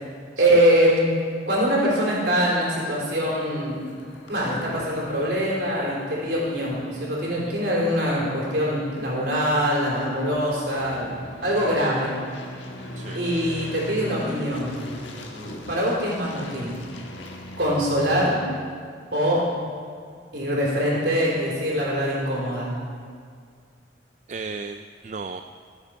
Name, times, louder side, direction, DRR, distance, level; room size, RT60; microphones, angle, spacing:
voice 1, 0.4-1.2 1.5-3.8 4.3-12.1 13.1-14.8 15.7-16.8 17.6-18.5 19.1-19.6 20.3-22.7, equal, 65° right, -5 dB, 3.8 m, -23 dB
sound 1, 3.0-18.4, left 1 dB, 85° left, 1.5 m, -40 dB
voice 2, 24.3-25.4, right 4 dB, 40° right, 8 dB, 0.3 m, -34 dB
14.5 x 8.3 x 5.2 m, 2.1 s
head